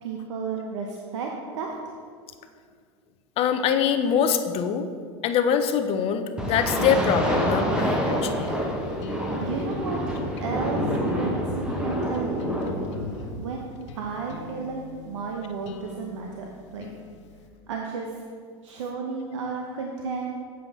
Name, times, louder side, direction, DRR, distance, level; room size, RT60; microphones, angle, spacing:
voice 1, 0.0-1.7 9.4-12.4 13.4-13.7 13.9-16.9 17.7-18.2 18.6-20.4, right 5 dB, 90° right, 0 dB, 0.7 m, -33 dB
voice 2, 3.4-4.9 5.2-8.5, left 7 dB, 40° left, 8 dB, 0.5 m, -24 dB
sound 1, 6.4-13.3, equal, 5° right, 1.0 m, -27 dB
sound 2, 7.7-17.5, left 5 dB, 90° left, 0.6 m, -40 dB
7.5 x 5.6 x 3.4 m, 2.1 s
supercardioid pair, 115°, 15 cm